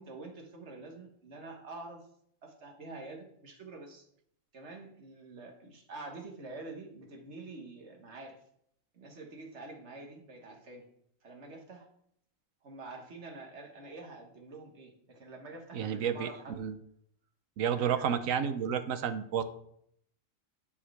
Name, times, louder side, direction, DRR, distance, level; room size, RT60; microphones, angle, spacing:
voice 1, 0.0-2.0 2.4-4.1 4.5-8.4 8.9-10.9 11.2-11.9 12.6-16.6 17.7-18.1, right 2 dB, 60° right, 2 dB, 1.6 m, -47 dB
voice 2, 15.7-16.8 17.6-19.4, right 8 dB, 85° right, 10 dB, 1.1 m, -31 dB
11.5 x 4.8 x 3.3 m, 0.70 s
omnidirectional pair, 1.4 m